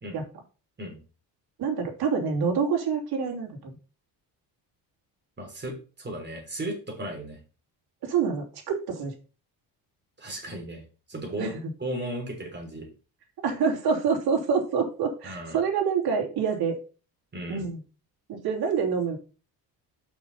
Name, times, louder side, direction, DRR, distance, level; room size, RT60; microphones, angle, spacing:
voice 1, 1.6-3.7 8.0-9.1 11.4-11.7 13.4-16.8 17.5-17.8 18.3-19.2, right 6 dB, 60° right, 0 dB, 3.0 m, -26 dB
voice 2, 5.4-7.4 10.2-10.8 11.1-11.5 11.8-12.9 15.2-15.6 17.3-17.7, right 1 dB, 25° right, 2 dB, 3.5 m, -35 dB
6.0 x 5.4 x 5.6 m, 0.35 s
cardioid pair, 100°, 42 cm